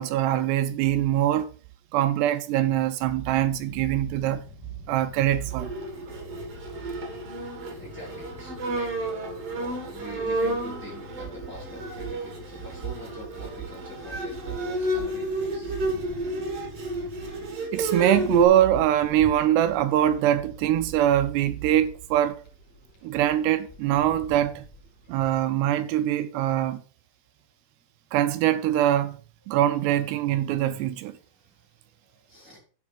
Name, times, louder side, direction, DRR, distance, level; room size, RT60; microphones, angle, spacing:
voice 1, 0.0-1.5 1.9-4.4 4.9-5.7 17.7-22.4 23.0-24.6 25.1-26.8 28.1-29.2 29.5-31.2, right 12 dB, 80° right, 2.6 m, -23 dB
sound 1, 3.0-17.6, left 4 dB, 85° left, 4.0 m, -47 dB
Bowed string instrument, 5.5-18.5, right 2 dB, 55° right, 1.8 m, -31 dB
voice 2, 7.5-15.7 23.0-23.2 27.4-27.5 28.0-28.1 29.5-29.6 30.5-30.6 31.0-32.6, left 1 dB, 5° right, 1.7 m, -45 dB
sound 2, 15.7-25.4, left 2 dB, 45° left, 2.9 m, -47 dB
11.0 x 5.3 x 5.2 m
omnidirectional pair, 5.3 m